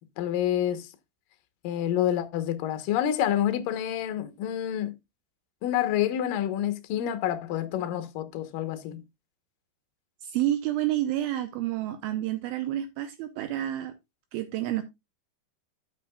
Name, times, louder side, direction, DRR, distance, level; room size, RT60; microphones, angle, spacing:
voice 1, 0.2-0.9 1.6-4.9 5.6-9.0, left 11 dB, 70° left, 2.3 m, -28 dB
voice 2, 10.2-13.9 14.3-14.8, right 13 dB, 80° right, 2.2 m, -29 dB
12.0 x 8.3 x 2.3 m
omnidirectional pair, 4.9 m